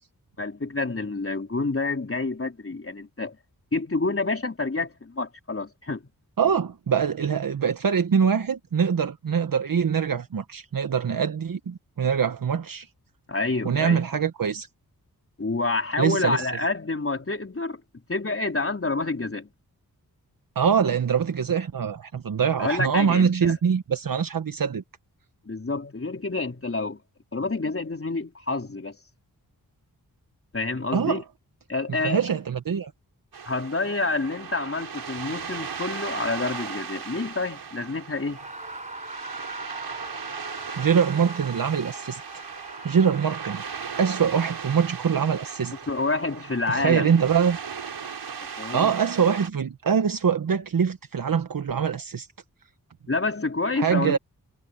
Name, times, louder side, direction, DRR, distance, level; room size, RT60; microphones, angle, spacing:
voice 1, 0.4-3.4 3.7-6.1 13.3-14.0 15.4-17.8 18.1-19.5 22.6-23.5 25.5-27.0 27.3-29.0 30.5-31.2 31.7-32.3 33.4-38.5 45.9-47.1 48.6-48.9 53.1-54.2, left 3 dB, 35° left, 4.1 m, -28 dB
voice 2, 6.4-12.9 13.6-14.7 16.0-16.5 20.5-24.8 30.9-31.2 32.0-32.9 40.8-42.2 42.8-43.6 44.0-45.8 46.7-47.6 48.7-52.3 53.8-54.2, right 7 dB, 60° right, 1.1 m, -23 dB
sound 1, 33.3-49.5, right 6 dB, 90° right, 6.5 m, -37 dB
Screaming, 38.3-44.5, right 2 dB, 20° right, 6.4 m, -41 dB
cardioid pair, 60°, 37 cm